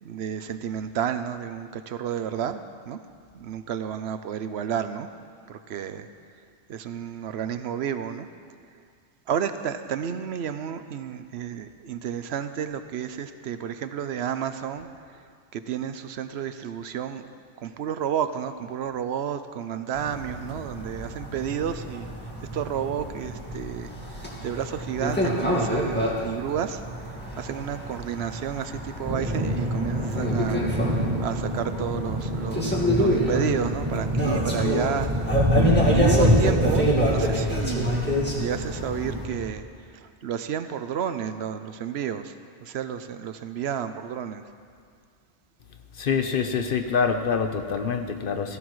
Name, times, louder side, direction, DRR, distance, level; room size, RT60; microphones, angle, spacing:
voice 1, 0.0-3.0 3.3-5.1 5.5-6.1 6.7-8.3 9.3-15.3 15.5-17.3 17.6-22.1 22.5-35.1 35.9-42.3 42.6-44.4, right 8 dB, 75° right, 10 dB, 0.8 m, -31 dB
sound 1, 19.9-39.3, equal, 10° left, 1.8 m, -28 dB
sound 2, 29.0-39.5, equal, 40° right, 2.0 m, -26 dB
voice 2, 46.0-48.6, left 6 dB, 55° left, 6 dB, 0.9 m, -25 dB
15.5 x 14.5 x 3.1 m, 2.1 s
omnidirectional pair, 1.2 m